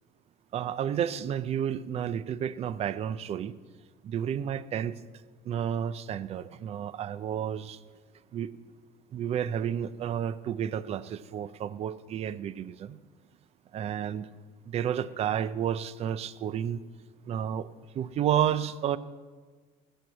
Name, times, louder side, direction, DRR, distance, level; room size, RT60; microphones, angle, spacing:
voice 1, 0.5-3.5 4.0-5.0 5.4-7.8 8.3-8.5 9.1-13.0 13.7-14.3 14.7-16.8 17.3-17.7 17.9-19.0, right 9 dB, 40° right, 15 dB, 0.5 m, -31 dB
15.0 x 6.2 x 7.6 m, 1.4 s
cardioid pair, 140°, 16 cm